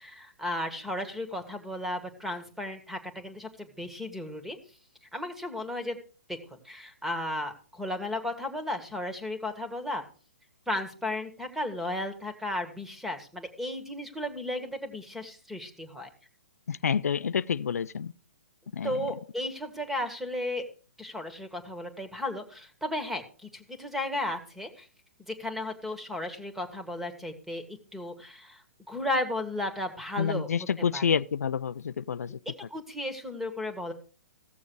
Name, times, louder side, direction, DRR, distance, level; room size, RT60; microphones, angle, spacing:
voice 1, 0.0-4.6 5.1-6.0 6.3-10.0 10.7-16.1 18.8-20.6 21.0-24.9 25.3-27.6 27.9-28.6 28.9-30.7 30.9-31.1 32.5-33.9, left 1 dB, 5° right, 1.9 m, -34 dB
voice 2, 16.7-18.1 18.7-19.1 30.2-32.4, left 7 dB, 80° left, 0.4 m, -28 dB
15.5 x 7.1 x 4.8 m
hypercardioid pair, 125°, 8 cm